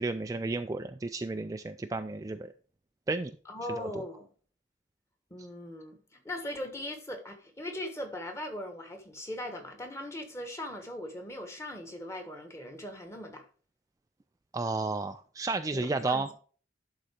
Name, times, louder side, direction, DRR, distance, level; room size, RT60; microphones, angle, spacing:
voice 1, 0.0-2.5 3.1-3.3 3.8-4.0 14.5-16.3, right 3 dB, 20° right, 0.3 m, -32 dB
voice 2, 3.4-4.3 5.3-13.5 15.7-16.3, left 1 dB, 15° left, 1.5 m, -39 dB
11.5 x 4.0 x 4.9 m
head